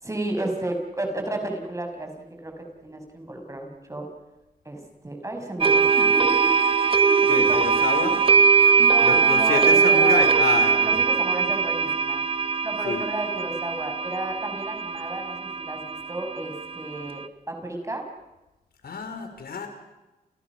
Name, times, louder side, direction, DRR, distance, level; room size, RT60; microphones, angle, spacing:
voice 1, 0.0-2.1 2.4-4.1 4.6-6.4 6.9-8.1 8.8-10.3 10.8-12.2 12.6-18.0, right 1 dB, 20° right, 4 dB, 6.4 m, -33 dB
sound 1, 5.6-17.2, right 5 dB, 35° right, 1.3 m, -21 dB
voice 2, 7.3-8.2 9.0-11.0 12.8-13.0 18.8-19.7, left 5 dB, 70° left, 6 dB, 5.1 m, -28 dB
30.0 x 30.0 x 6.3 m, 1.0 s
wide cardioid pair, 110°, 16 cm